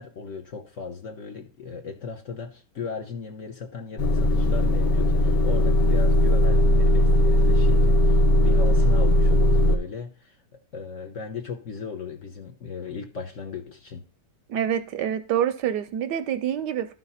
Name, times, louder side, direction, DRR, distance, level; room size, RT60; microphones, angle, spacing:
voice 1, 0.0-14.0, left 5 dB, 50° left, 2 dB, 1.1 m, -37 dB
Motor vehicle (road) / Engine starting / Idling, 4.0-9.8, equal, 70° left, 1.7 m, -19 dB
voice 2, 14.5-16.9, right 9 dB, 75° right, 11 dB, 1.1 m, -26 dB
12.0 x 4.1 x 5.6 m, 0.38 s
omnidirectional pair, 2.0 m